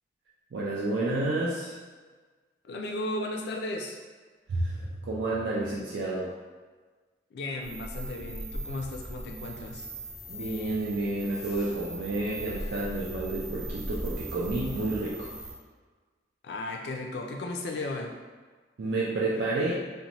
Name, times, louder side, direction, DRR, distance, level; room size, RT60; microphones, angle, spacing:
voice 1, 0.5-1.7 4.5-6.3 10.3-15.4 18.8-19.7, right 2 dB, 85° right, -5 dB, 0.4 m, -30 dB
voice 2, 2.6-4.0 7.3-9.9 16.4-18.2, left 2 dB, 65° left, 2 dB, 0.3 m, -35 dB
sound 1, 7.6-15.5, right 1 dB, ahead, 0.4 m, -39 dB
2.6 x 2.1 x 2.9 m, 1.4 s
head